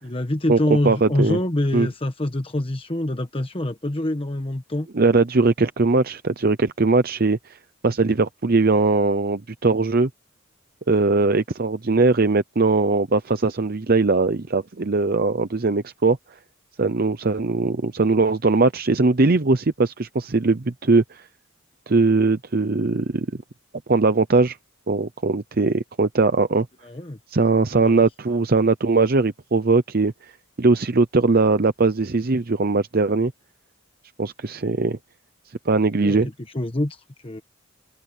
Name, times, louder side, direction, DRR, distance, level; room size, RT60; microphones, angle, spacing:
voice 1, 0.0-4.9 26.8-27.2 27.7-28.0 36.0-36.2 36.5-37.4, left 1 dB, 25° left, 1.2 m, -25 dB
voice 2, 0.8-1.4 1.7-1.9 4.9-7.6 7.8-10.1 10.9-16.2 16.8-21.3 21.9-23.3 23.9-24.6 24.9-26.7 27.3-30.3 30.6-33.3 34.2-35.0 35.7-36.3, right 3 dB, 50° right, 0.7 m, -20 dB
head